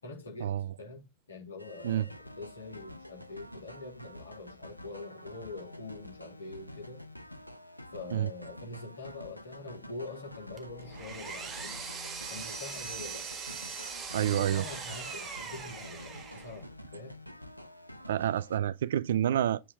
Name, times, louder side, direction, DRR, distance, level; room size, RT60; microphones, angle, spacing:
voice 1, 0.0-7.0 7.9-11.7 12.3-13.6 14.2-17.2, left 3 dB, 70° left, 3.0 m, -44 dB
sound 1, 1.6-18.6, left 1 dB, 90° left, 0.6 m, -48 dB
Power tool, 10.6-16.6, right 5 dB, 25° right, 1.6 m, -41 dB
voice 2, 14.1-14.7 18.1-19.6, right 11 dB, 60° right, 0.4 m, -28 dB
7.8 x 3.8 x 6.5 m
figure-of-eight pair, 90°, 0 cm